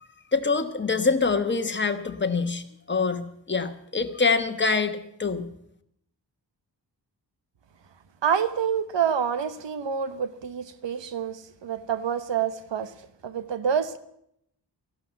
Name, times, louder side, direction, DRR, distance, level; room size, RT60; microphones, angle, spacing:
voice 1, 0.3-5.5, left 4 dB, 25° left, 1.2 m, -25 dB
voice 2, 8.2-12.9 13.2-14.0, right 7 dB, 80° right, 1.2 m, -27 dB
15.0 x 12.0 x 8.0 m
wide cardioid pair, 150°, 43 cm